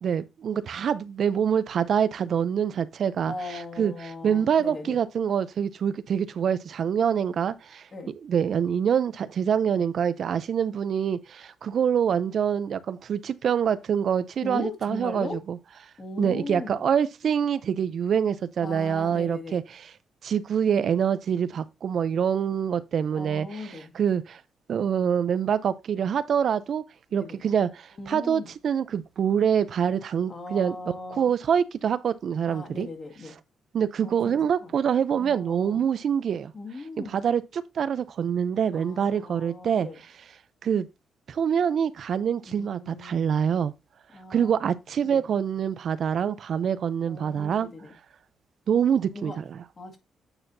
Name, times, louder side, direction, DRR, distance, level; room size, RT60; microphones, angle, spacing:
voice 1, 0.0-15.6 16.2-19.9 20.2-24.4 24.7-26.8 27.1-32.9 33.7-36.5 37.0-39.9 40.6-40.9 41.3-43.7 44.3-47.7 48.7-49.6, right 8 dB, 60° right, 0.5 m, -25 dB
voice 2, 3.3-5.0 7.9-8.1 14.4-15.4 16.0-16.8 18.6-19.6 23.1-23.9 27.1-27.4 28.0-28.5 30.3-31.3 32.5-33.4 34.0-34.3 34.6-34.7 35.2-35.8 36.5-37.2 38.7-40.0 42.5-43.3 44.1-44.6 45.0-45.2 47.1-47.9 49.1-49.4 49.8-50.0, left 2 dB, 35° left, 1.9 m, -38 dB
8.8 x 4.4 x 2.7 m
cardioid pair, 90°, 0 cm